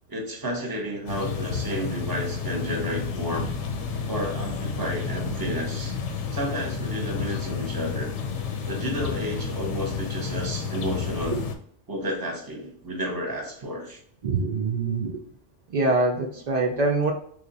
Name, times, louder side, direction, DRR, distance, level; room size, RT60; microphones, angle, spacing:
voice 1, 0.1-3.5 4.1-6.0 6.3-8.1 8.7-11.4 11.9-14.0, equal, 25° right, 1 dB, 0.5 m, -31 dB
sound 1, 1.1-11.5, left 5 dB, 70° left, 0.8 m, -31 dB
voice 2, 14.2-15.2 15.7-17.1, right 3 dB, 85° right, 1 dB, 0.3 m, -24 dB
3.1 x 2.4 x 4.0 m, 0.64 s
omnidirectional pair, 1.3 m